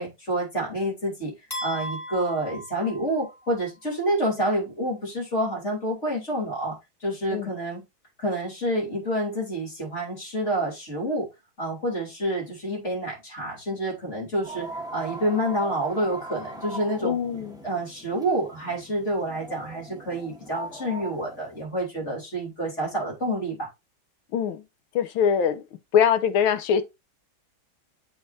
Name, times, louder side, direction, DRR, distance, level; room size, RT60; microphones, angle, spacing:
voice 1, 0.0-1.3 1.6-7.8 8.2-11.3 11.6-17.2 17.6-23.7, right 1 dB, 35° left, 3.7 m, -28 dB
sound 1, 1.5-3.6, equal, 10° left, 2.3 m, -36 dB
sound 2, 14.4-21.6, right 1 dB, 5° right, 0.3 m, -40 dB
voice 2, 17.0-17.6 24.3-24.7 25.0-25.6 25.9-26.8, left 8 dB, 90° left, 1.6 m, -22 dB
8.2 x 4.9 x 2.7 m
omnidirectional pair, 2.2 m